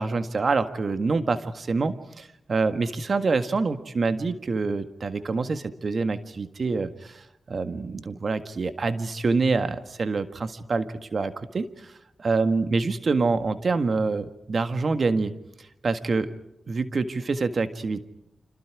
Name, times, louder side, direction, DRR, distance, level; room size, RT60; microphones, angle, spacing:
voice 1, 0.0-11.9 12.2-15.3 15.8-16.3 16.7-18.1, right 4 dB, 60° right, 10 dB, 1.7 m, -26 dB
30.0 x 26.5 x 4.9 m, 0.83 s
supercardioid pair, 40°, 0 cm